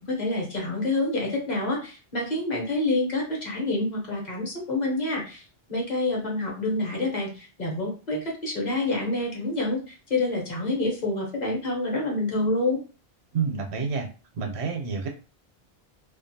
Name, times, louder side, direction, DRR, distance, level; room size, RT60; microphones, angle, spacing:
voice 1, 0.0-5.4 5.7-12.8, left 2 dB, 45° left, -2 dB, 1.0 m, -27 dB
voice 2, 13.3-14.1 14.3-15.1, right 5 dB, 80° right, 3 dB, 0.9 m, -28 dB
2.5 x 2.3 x 2.6 m, 0.35 s
omnidirectional pair, 1.1 m